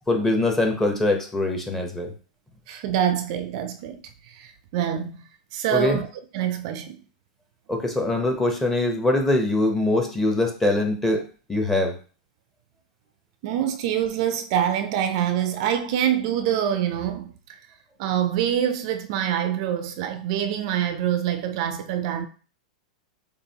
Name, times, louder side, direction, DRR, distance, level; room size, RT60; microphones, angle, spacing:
voice 1, 0.1-2.1 5.7-6.0 7.7-11.9, left 2 dB, 5° left, 0.8 m, -23 dB
voice 2, 2.7-4.0 4.3-5.2 5.5-6.1 6.3-7.0 13.4-17.3 18.0-22.3, right 10 dB, 50° right, 0.5 m, -25 dB
6.8 x 2.4 x 2.8 m
supercardioid pair, 155°, 4 cm